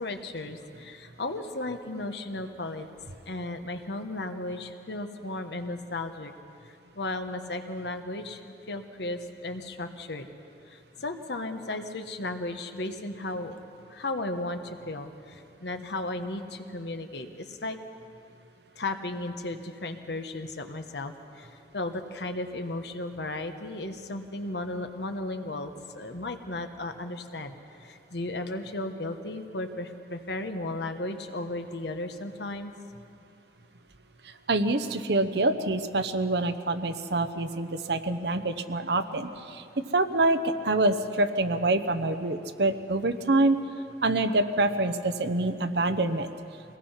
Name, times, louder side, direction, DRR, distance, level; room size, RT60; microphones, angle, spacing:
voice 1, 0.0-2.9 3.3-6.3 6.9-8.4 8.7-10.3 10.7-17.8 18.8-27.5 27.8-32.7, left 2 dB, 70° left, 7 dB, 1.3 m, -35 dB
voice 2, 34.2-43.6 44.0-46.3, right 2 dB, 70° right, 10 dB, 1.0 m, -26 dB
24.5 x 18.5 x 5.8 m, 2.5 s
head